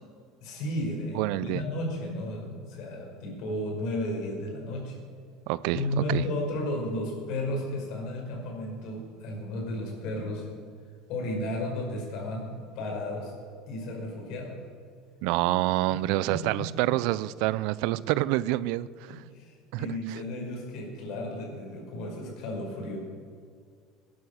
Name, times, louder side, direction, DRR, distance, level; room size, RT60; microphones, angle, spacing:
voice 1, 0.4-5.0 5.7-10.5 11.1-13.3 13.7-14.6 15.9-16.0 16.3-16.6 19.1-23.0, left 1 dB, 60° left, 5.6 m, -33 dB
voice 2, 1.1-1.6 5.5-6.2 15.2-19.2 19.7-19.9, right 16 dB, 70° right, 0.5 m, -27 dB
18.5 x 11.0 x 6.6 m
cardioid pair, 140°, 0 cm